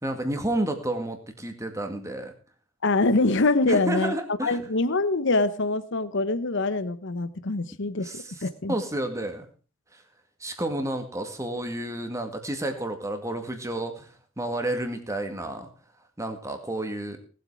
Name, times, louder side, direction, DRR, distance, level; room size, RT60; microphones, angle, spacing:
voice 1, 0.0-2.3 3.6-4.6 8.0-9.5 9.9-10.0 10.4-15.7 16.2-17.2, right 1 dB, 15° right, 6 dB, 2.1 m, -31 dB
voice 2, 2.8-4.1 4.4-8.8, left 2 dB, 60° left, 14 dB, 0.9 m, -24 dB
18.0 x 8.1 x 4.9 m, 0.37 s
head